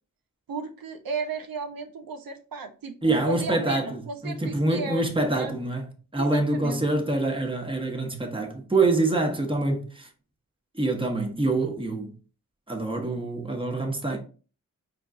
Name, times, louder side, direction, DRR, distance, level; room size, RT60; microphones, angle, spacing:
voice 1, 0.5-5.0 5.3-5.5 6.2-6.8, right 4 dB, 80° right, 0.6 m, -34 dB
voice 2, 3.0-5.9 6.1-10.1 10.7-12.1 12.7-14.2, right 2 dB, 15° right, 1.0 m, -26 dB
4.9 x 2.3 x 3.6 m
wide cardioid pair, 55°, 34 cm